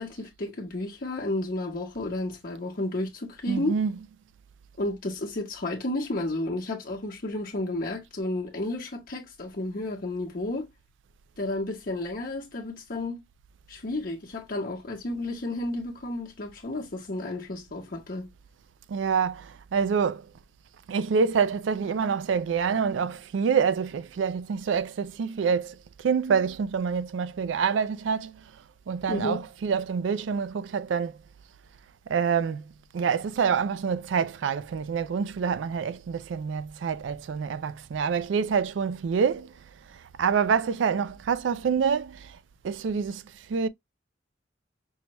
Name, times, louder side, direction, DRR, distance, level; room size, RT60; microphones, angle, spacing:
voice 1, 0.0-3.8 4.8-10.7 11.4-13.2 13.7-18.3 29.1-29.4, left 2 dB, 50° left, 0.9 m, -32 dB
voice 2, 3.5-4.0 18.9-20.3 20.9-28.5 28.9-31.2 32.1-39.6 39.9-42.4 42.6-43.7, right 6 dB, 85° right, 0.4 m, -27 dB
5.5 x 2.2 x 2.9 m
head